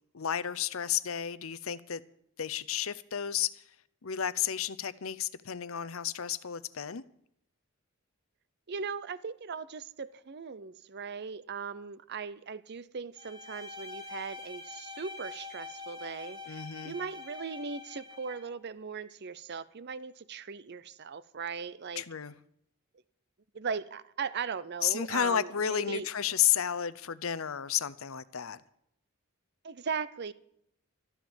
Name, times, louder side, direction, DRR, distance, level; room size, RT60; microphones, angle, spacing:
voice 1, 0.1-2.0 2.4-3.6 4.0-7.0 16.5-16.9 22.0-22.3 24.8-28.6, left 9 dB, 80° left, 0.7 m, -32 dB
voice 2, 8.7-16.6 16.8-22.0 23.5-26.1 29.6-30.3, right 5 dB, 55° right, 0.6 m, -38 dB
Bowed string instrument, 13.2-18.5, left 3 dB, 20° right, 2.0 m, -45 dB
13.5 x 12.5 x 7.1 m
head